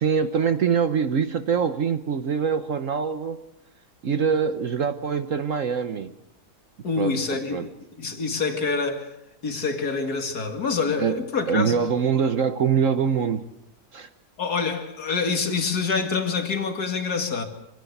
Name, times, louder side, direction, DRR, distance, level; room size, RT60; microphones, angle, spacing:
voice 1, 0.0-3.4 4.0-6.1 7.0-7.2 7.5-7.7 11.0-11.2 11.5-13.4 13.9-14.1, right 6 dB, 60° right, 1.3 m, -24 dB
voice 2, 6.8-9.2 9.4-11.8 14.4-17.4, left 4 dB, 80° left, 2.7 m, -26 dB
26.5 x 17.0 x 8.1 m
omnidirectional pair, 1.6 m